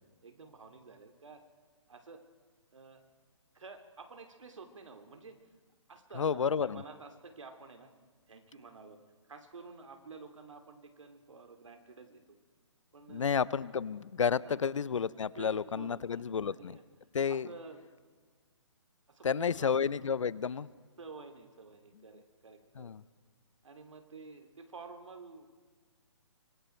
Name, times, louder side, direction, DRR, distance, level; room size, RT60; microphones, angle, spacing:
voice 1, 0.2-1.4 1.9-2.2 2.7-3.0 3.5-5.4 5.9-7.9 8.3-9.0 9.2-12.4 12.9-13.3 14.4-14.6 15.3-16.8 17.3-18.2 19.1-19.8 21.0-22.9 23.6-25.5, right 4 dB, 90° right, 6 dB, 2.9 m, -50 dB
voice 2, 6.2-6.8 13.1-16.8 17.1-17.5 19.2-20.7 22.8-23.0, left 6 dB, 80° left, 20 dB, 0.7 m, -31 dB
25.5 x 24.0 x 4.5 m, 1.5 s
hypercardioid pair, 170°, 16 cm